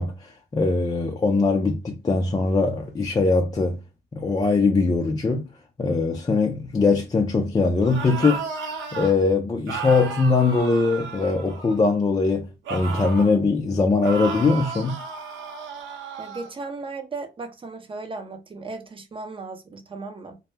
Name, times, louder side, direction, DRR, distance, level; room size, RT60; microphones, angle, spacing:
voice 1, 0.0-3.8 4.1-5.5 5.8-8.4 8.9-15.0, left 3 dB, 20° left, 0.4 m, -21 dB
sound 1, 7.8-9.1 9.7-11.9 12.6-13.4 14.0-16.5, right 5 dB, 75° right, 0.7 m, -33 dB
voice 2, 16.2-20.4, right 3 dB, 25° right, 0.6 m, -36 dB
2.1 x 2.0 x 3.2 m
cardioid pair, 90°, 20 cm